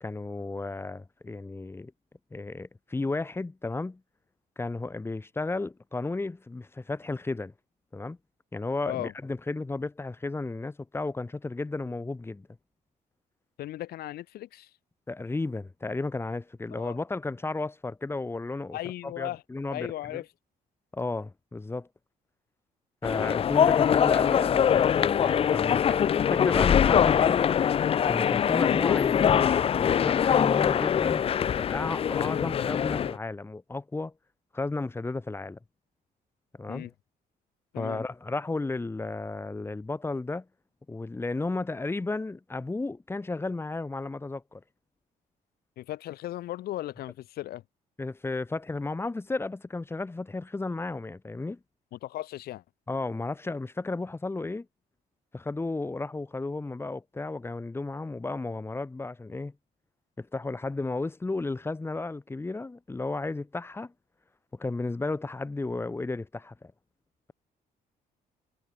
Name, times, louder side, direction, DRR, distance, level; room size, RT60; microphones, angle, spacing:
voice 1, 0.0-1.9 2.3-4.0 4.6-7.5 7.9-8.2 8.5-12.5 15.1-18.8 19.0-20.2 20.9-21.9 23.0-27.5 28.0-31.3 31.6-34.1 34.5-35.6 36.6-36.9 37.8-40.4 40.9-44.6 48.0-51.6 52.9-54.7 55.3-59.5 60.2-63.9 64.5-66.7, left 3 dB, 15° left, 1.4 m, -33 dB
voice 2, 13.6-14.7 16.7-17.0 18.7-19.4 19.7-20.3 36.7-36.9 37.7-38.0 45.8-47.6 51.9-52.6, left 14 dB, 75° left, 2.0 m, -37 dB
sound 1, 23.0-33.2, left 8 dB, 35° left, 0.5 m, -23 dB
cardioid pair, 110°, 16 cm